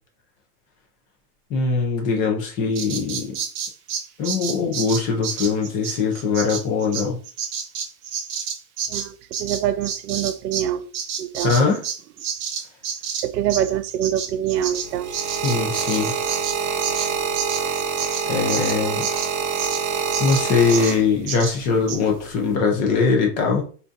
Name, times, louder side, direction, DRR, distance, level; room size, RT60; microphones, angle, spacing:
voice 1, 1.5-3.4 4.2-7.2 11.4-11.8 15.4-16.2 18.3-19.1 20.2-23.6, left 4 dB, 20° left, 0.3 m, -21 dB
Bird vocalization bird call bird song, 2.8-10.7 10.9-19.8 20.1-20.4 20.7-21.0 21.3-21.6 21.9-22.0, right 7 dB, 35° right, 0.6 m, -30 dB
voice 2, 8.9-10.9 11.2-11.5 13.2-15.2, right 11 dB, 85° right, 0.5 m, -25 dB
sound 1, 14.6-21.4 22.2-22.5, right 6 dB, 65° right, 0.9 m, -26 dB
2.6 x 2.2 x 3.7 m
supercardioid pair, 135°, 46 cm